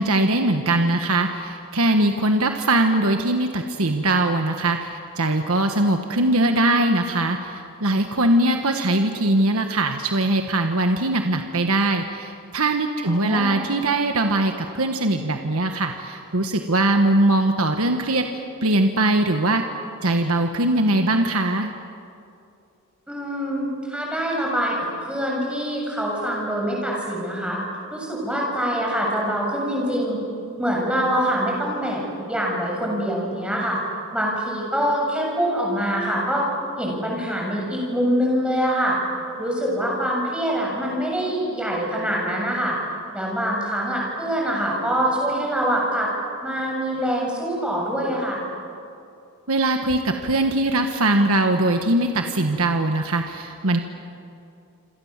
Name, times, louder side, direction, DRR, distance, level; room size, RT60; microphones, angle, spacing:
voice 1, 0.0-18.3 18.6-19.6 20.0-21.7 49.5-53.8, right 2 dB, 70° right, 5 dB, 1.5 m, -21 dB
voice 2, 13.0-13.6 23.1-24.8 25.0-27.6 27.9-30.2 30.6-32.0 32.3-33.8 34.1-36.4 36.8-39.0 39.4-42.8 43.1-46.1 46.4-48.4, equal, 5° right, -2 dB, 7.3 m, -24 dB
28.0 x 26.5 x 7.5 m, 2.6 s
head